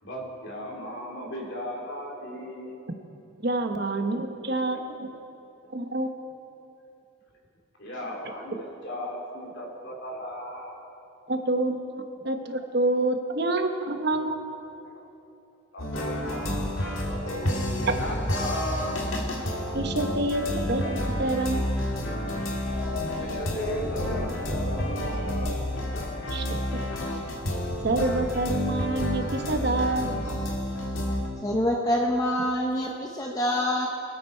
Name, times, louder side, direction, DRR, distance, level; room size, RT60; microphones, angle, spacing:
voice 1, 0.0-2.7 3.7-3.8 4.3-4.5 7.8-10.8 12.1-12.2 14.8-15.0 15.7-19.0 23.1-25.6 26.1-26.2, equal, 60° left, -2 dB, 2.9 m, -36 dB
voice 2, 3.4-5.1 5.7-6.1 11.3-14.4 19.7-21.6 26.3-26.6 27.8-30.2, right 2 dB, 50° right, 5 dB, 1.0 m, -27 dB
sound 1, 15.8-31.3, equal, 75° left, 1.7 m, -30 dB
sound 2, 22.6-29.3, left 4 dB, 90° left, 1.1 m, -39 dB
voice 3, 31.4-33.9, left 1 dB, 15° left, 0 dB, 0.7 m, -26 dB
24.5 x 8.8 x 4.4 m, 2.7 s
head